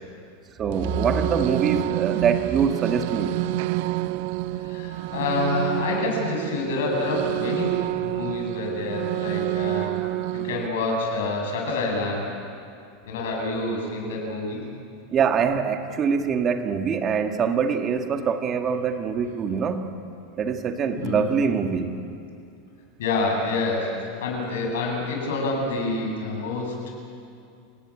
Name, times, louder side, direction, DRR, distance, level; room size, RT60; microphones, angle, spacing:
voice 1, 0.6-3.4 15.1-19.8 20.4-21.9, right 6 dB, 25° right, 6 dB, 1.8 m, -24 dB
sound 1, 0.7-10.7, right 18 dB, 55° right, 0.7 m, -28 dB
voice 2, 4.6-7.7 8.0-10.0 10.3-12.3 13.1-14.6 21.0-21.3 23.0-23.9 24.2-26.9, left 3 dB, 85° left, 0 dB, 7.7 m, -27 dB
29.5 x 19.0 x 8.8 m, 2.5 s
supercardioid pair, 160°, 0 cm